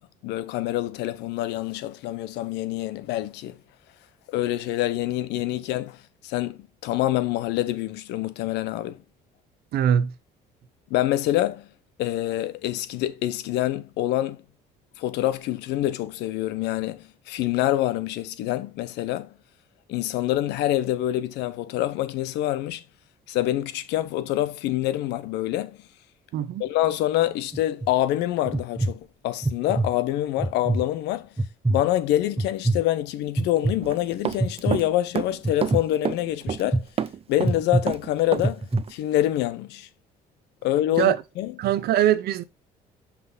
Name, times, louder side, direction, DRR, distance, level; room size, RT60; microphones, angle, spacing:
voice 1, 0.2-3.6 4.3-9.0 10.9-11.7 12.0-14.4 15.0-19.3 19.9-22.8 23.3-25.8 26.6-31.3 31.7-36.9 37.3-39.9 40.6-41.5, left 14 dB, 85° left, 0.8 m, -26 dB
voice 2, 9.7-10.1 26.3-26.6 41.0-41.2 41.6-42.4, right 11 dB, 70° right, 0.7 m, -22 dB
sound 1, 27.5-27.9 28.5-28.9 29.4-29.9 30.4-30.8 31.4-31.8 32.4-32.8 33.4-33.7 34.4-34.8 35.4-35.8 36.5-36.8 37.4-37.8 38.4-38.8, right 2 dB, 10° right, 0.9 m, -23 dB
Run, 33.8-34.9 35.1-36.7 37.0-38.5 38.8-38.9, right 8 dB, 35° right, 0.5 m, -29 dB
5.9 x 5.8 x 4.0 m
cardioid pair, 110°, 17 cm